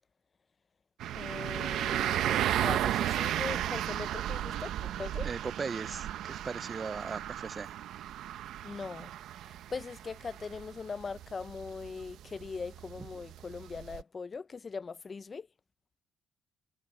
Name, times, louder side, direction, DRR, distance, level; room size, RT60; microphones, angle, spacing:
sound 1, 1.0-14.0, right 12 dB, 80° right, 0.8 m, -34 dB
voice 1, 1.1-5.3 8.6-9.1 9.4-15.5, left 5 dB, 35° left, 0.6 m, -41 dB
voice 2, 5.2-7.7 13.0-13.1, right 5 dB, 35° right, 0.6 m, -38 dB
cardioid pair, 90°, 0 cm